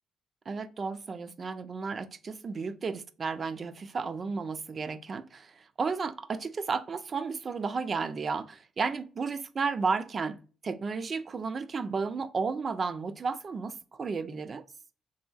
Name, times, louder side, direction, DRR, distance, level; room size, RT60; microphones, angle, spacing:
voice 1, 0.5-14.6, right 4 dB, 40° right, 0.3 m, -33 dB
3.1 x 2.7 x 2.3 m
cardioid pair, 90°, 0 cm